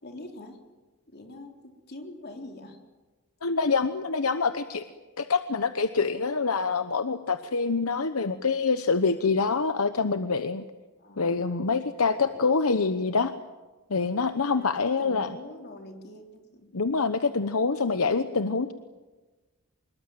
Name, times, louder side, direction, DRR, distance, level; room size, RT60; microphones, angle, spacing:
voice 1, 0.0-0.6 1.1-2.8 11.0-11.5 12.2-12.3 14.5-16.7, left 1 dB, 45° left, 3 dB, 3.8 m, -44 dB
voice 2, 3.4-4.8 5.2-10.6 11.2-13.3 13.9-15.3 16.7-18.7, left 4 dB, 70° left, 10 dB, 1.0 m, -26 dB
25.5 x 22.0 x 9.1 m, 1.2 s
head